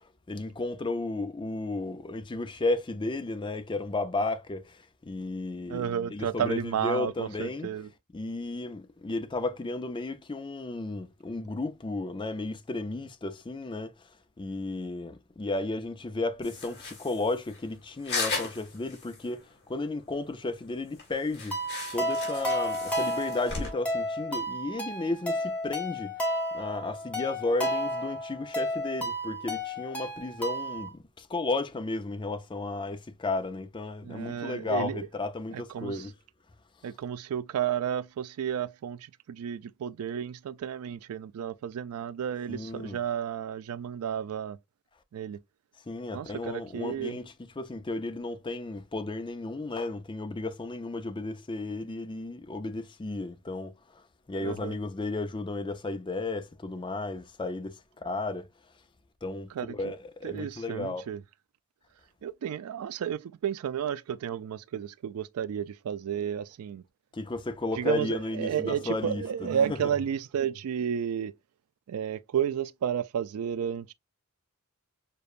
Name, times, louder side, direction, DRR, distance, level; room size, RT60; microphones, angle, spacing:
voice 1, 0.3-7.7 8.1-13.9 14.4-21.6 21.9-26.1 26.5-36.1 42.5-43.0 45.9-58.5 59.2-61.1 67.1-69.9, left 2 dB, 20° left, 0.5 m, -34 dB
voice 2, 5.7-7.9 34.0-35.0 35.5-36.1 36.8-39.0 39.3-44.6 45.1-45.4 46.1-47.2 54.4-54.7 59.5-59.7 60.2-61.2 62.2-66.8 67.8-71.3 71.9-73.9, right 8 dB, 70° right, 0.3 m, -32 dB
sound 1, 16.4-19.4 19.6-19.7 20.1-20.2 20.6-20.7 20.9-23.7, left 4 dB, 50° left, 2.4 m, -37 dB
sound 2, 21.5-30.9, equal, 5° left, 1.0 m, -32 dB
6.6 x 2.2 x 2.4 m
head